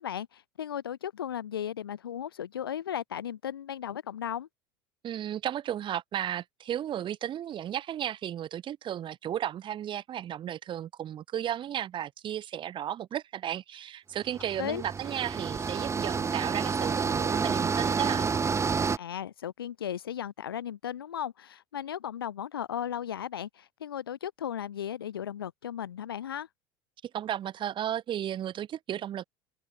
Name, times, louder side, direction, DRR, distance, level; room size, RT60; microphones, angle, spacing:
voice 1, 0.0-4.5 14.6-14.8 19.0-26.5, left 9 dB, 90° left, 5.1 m, -36 dB
voice 2, 5.0-18.3 27.1-29.2, right 11 dB, 45° right, 4.9 m, -34 dB
sound 1, 14.3-19.0, right 5 dB, 25° right, 4.0 m, -29 dB
hypercardioid pair, 85°, 12 cm